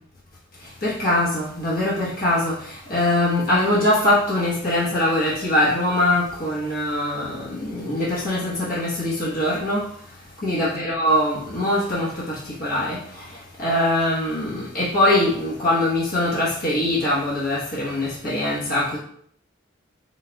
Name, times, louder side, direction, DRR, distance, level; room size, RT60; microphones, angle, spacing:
voice 1, 0.6-9.9 10.4-19.0, left 1 dB, 50° left, -7 dB, 1.1 m, -22 dB
4.8 x 4.2 x 2.2 m, 0.65 s
head